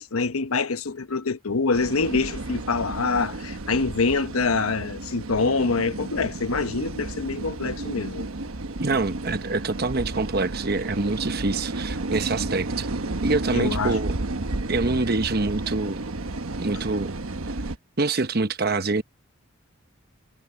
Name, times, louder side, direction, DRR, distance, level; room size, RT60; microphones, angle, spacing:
voice 1, 0.0-8.3 13.5-14.0, left 4 dB, 85° left, 1.0 m, -25 dB
sound 1, 1.7-17.8, right 2 dB, 80° right, 1.2 m, -32 dB
voice 2, 8.8-12.9 13.2-14.1 14.7-16.0 16.6-17.2 18.0-19.0, right 3 dB, 45° right, 1.0 m, -25 dB
head